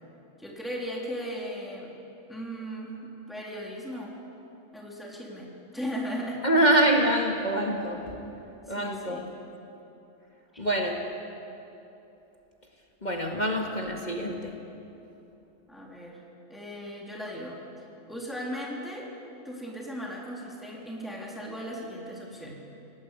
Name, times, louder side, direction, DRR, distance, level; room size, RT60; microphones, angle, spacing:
voice 1, 0.4-1.9 2.3-4.2 4.7-6.4 8.7-9.3 15.7-16.2 16.5-17.6 18.1-19.1 19.4-22.5, equal, ahead, -3 dB, 3.7 m, -37 dB
voice 2, 6.4-8.2 8.7-9.2 10.6-11.1 13.0-14.6, right 1 dB, 35° left, 1 dB, 2.1 m, -25 dB
27.5 x 18.5 x 8.4 m, 2.9 s
omnidirectional pair, 1.3 m